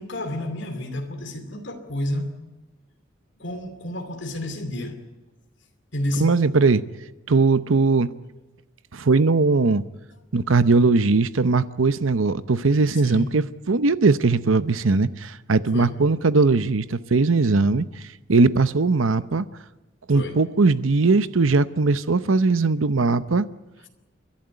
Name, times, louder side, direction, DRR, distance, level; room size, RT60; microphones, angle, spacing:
voice 1, 0.0-2.4 3.4-5.0 5.9-6.3 13.0-13.4 15.7-15.9 20.1-20.4, left 1 dB, 65° left, 2.7 m, -30 dB
voice 2, 6.2-6.8 7.3-8.1 8.9-9.8 10.3-19.5 20.1-23.5, right 3 dB, 85° right, 0.8 m, -20 dB
30.0 x 11.5 x 9.7 m
head